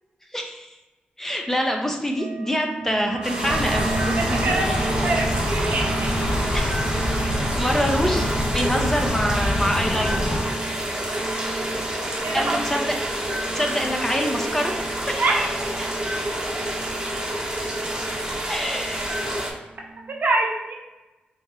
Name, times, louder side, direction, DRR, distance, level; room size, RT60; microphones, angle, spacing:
voice 1, 0.3-0.7 1.2-4.9 6.5-6.8 7.2-10.4 12.3-13.0 13.5-14.7 15.1-15.5 18.5-19.0, equal, 10° left, 2 dB, 0.5 m, -26 dB
sound 1, 2.2-17.3 17.6-18.4 18.7-19.4 19.8-20.2, right 4 dB, 85° right, 0.3 m, -36 dB
sound 2, 3.2-19.5, right 1 dB, 20° right, 0.7 m, -28 dB
sound 3, 3.4-10.4, left 1 dB, 65° left, 0.8 m, -26 dB
voice 2, 4.3-6.1 12.2-12.8 15.2-15.4 20.2-20.7, right 2 dB, 60° right, -1 dB, 0.7 m, -25 dB
4.0 x 2.5 x 3.0 m, 1.1 s
cardioid pair, 70°, 4 cm